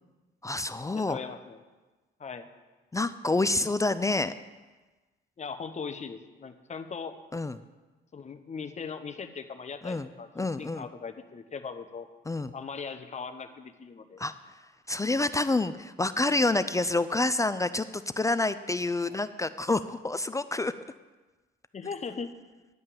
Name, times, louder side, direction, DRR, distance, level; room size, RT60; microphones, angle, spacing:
voice 1, 0.4-1.2 2.9-4.3 7.3-7.6 9.8-10.1 10.4-10.9 12.3-12.5 14.2-14.6 14.9-20.7, left 2 dB, 15° left, 12 dB, 0.4 m, -28 dB
voice 2, 1.0-1.6 2.2-2.5 5.4-7.1 8.1-10.3 10.6-12.1 12.5-14.2 19.0-19.2 21.7-22.3, left 5 dB, 35° left, 8 dB, 1.0 m, -39 dB
10.5 x 5.4 x 8.5 m, 1.2 s
cardioid pair, 90°, 20 cm